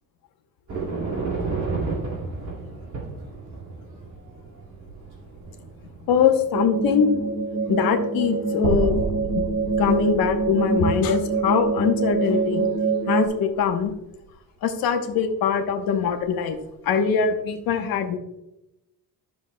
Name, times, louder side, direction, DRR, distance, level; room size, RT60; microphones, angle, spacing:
sound 1, 0.7-9.4 9.8-10.4 10.9-11.0 12.1-12.8 13.5-13.9 16.0-16.2 16.5-16.7, right 3 dB, 50° right, 2.3 m, -34 dB
voice 1, 6.1-7.2 7.7-9.0 9.3-9.5 9.8-12.7 13.1-13.9 14.6-16.6 16.8-18.2, left 6 dB, 70° left, 5 dB, 1.0 m, -22 dB
sound 2, 6.5-13.3, right 4 dB, 20° right, 1.2 m, -25 dB
sound 3, 8.6-12.8, right 2 dB, 85° right, 1.0 m, -31 dB
11.5 x 6.8 x 2.2 m, 0.91 s
cardioid pair, 180°, 37 cm